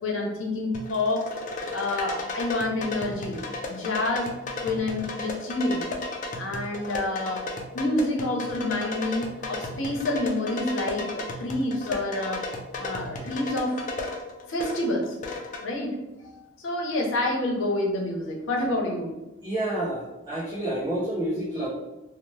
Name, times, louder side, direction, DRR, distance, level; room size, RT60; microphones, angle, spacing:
voice 1, 0.0-1.2 1.7-3.4 3.7-4.3 4.6-5.8 6.4-7.4 7.7-12.4 12.8-13.9 14.5-15.2 15.6-15.9 16.2-19.2, left 2 dB, 85° left, 0 dB, 0.6 m, -28 dB
sound 1, 0.7-15.6, left 2 dB, 40° left, 0.4 m, -34 dB
voice 2, 19.4-21.7, right 1 dB, 20° right, -8 dB, 0.5 m, -29 dB
2.8 x 2.0 x 3.0 m, 1.0 s
head